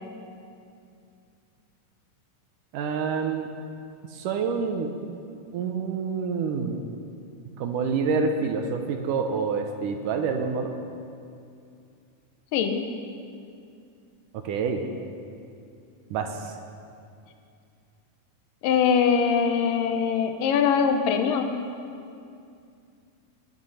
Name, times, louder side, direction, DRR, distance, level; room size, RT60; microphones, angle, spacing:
voice 1, 2.7-3.5 4.1-4.9 5.5-6.8 7.6-10.7 14.4-14.8 16.1-16.6, right 5 dB, 75° right, 5 dB, 2.3 m, -27 dB
voice 2, 12.5-12.9 18.6-21.5, left 6 dB, 75° left, 6 dB, 2.4 m, -22 dB
18.5 x 9.6 x 5.6 m, 2.5 s
omnidirectional pair, 4.0 m